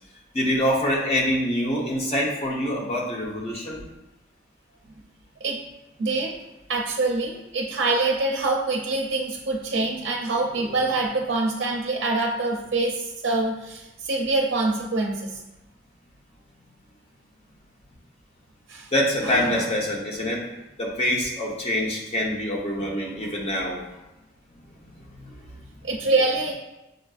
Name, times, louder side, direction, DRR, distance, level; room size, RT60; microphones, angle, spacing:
voice 1, 0.3-3.9 10.6-10.8 18.9-20.4 20.8-23.8 25.2-25.4, left 1 dB, 30° left, -2 dB, 0.7 m, -25 dB
voice 2, 6.0-6.3 6.7-15.4 18.7-18.9 19.2-19.6 25.8-26.5, right 3 dB, 65° right, -1 dB, 0.5 m, -25 dB
6.3 x 2.5 x 2.3 m, 0.98 s
head